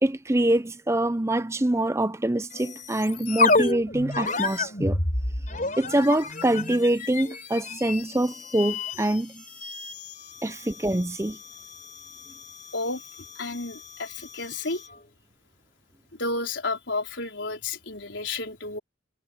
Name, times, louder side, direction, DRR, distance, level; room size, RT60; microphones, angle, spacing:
voice 1, 0.0-5.0 5.8-9.4 10.4-11.4, right 1 dB, 15° right, 0.7 m, -25 dB
sound 1, 2.5-15.0, left 3 dB, 45° left, 4.2 m, -31 dB
voice 2, 13.3-14.9 16.1-18.8, left 3 dB, 70° left, 4.5 m, -31 dB
head